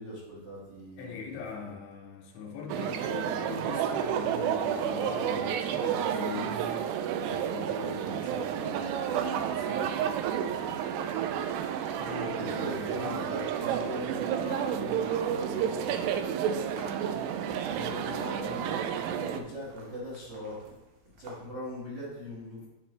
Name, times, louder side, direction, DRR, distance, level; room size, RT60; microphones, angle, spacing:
voice 1, 0.0-1.7 11.2-11.3 12.4-16.0 17.7-20.6 21.2-22.7, left 1 dB, 40° right, -7 dB, 1.6 m, -40 dB
voice 2, 1.0-6.6 7.2-9.9 12.0-13.3, left 5 dB, 75° left, 0 dB, 2.9 m, -41 dB
sound 1, 2.7-19.4, right 9 dB, 85° right, 2.4 m, -31 dB
sound 2, 8.8-21.4, right 3 dB, 70° right, 2.6 m, -54 dB
9.3 x 4.9 x 3.3 m, 1.0 s
omnidirectional pair, 5.3 m